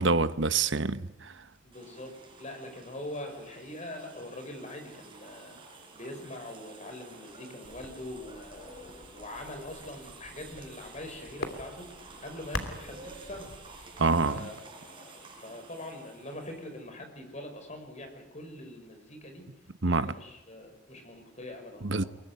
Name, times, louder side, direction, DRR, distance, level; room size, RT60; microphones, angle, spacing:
voice 1, 0.0-1.3 14.0-14.5 19.8-20.1 21.8-22.0, right 3 dB, 70° right, 1.1 m, -26 dB
voice 2, 1.6-2.1 2.4-5.6 5.9-13.5 14.3-19.5 19.8-22.1, left 1 dB, 40° left, 5.9 m, -43 dB
sound 1, 1.7-16.9, right 3 dB, 25° right, 6.5 m, -51 dB
sound 2, 7.6-14.3, left 2 dB, 80° left, 3.0 m, -44 dB
24.0 x 22.5 x 9.6 m
head